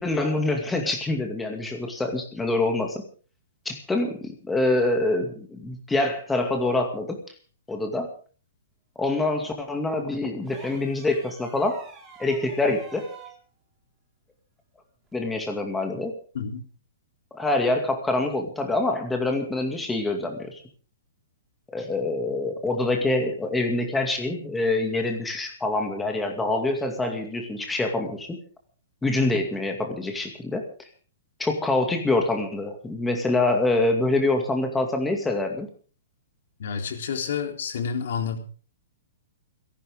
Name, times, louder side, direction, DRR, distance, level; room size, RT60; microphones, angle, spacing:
voice 1, 0.0-3.0 3.7-7.2 7.7-8.1 9.0-11.8 12.2-13.1 15.1-16.1 17.3-20.6 21.7-28.4 29.0-30.7 31.4-35.7, left 2 dB, 5° left, 3 dB, 2.3 m, -25 dB
sound 1, 10.4-13.4 15.1-15.2, right 5 dB, 10° right, 2.8 m, -46 dB
voice 2, 36.6-38.4, left 6 dB, 60° left, 4 dB, 3.6 m, -29 dB
29.5 x 11.5 x 3.7 m, 0.39 s
hypercardioid pair, 170°, 0 cm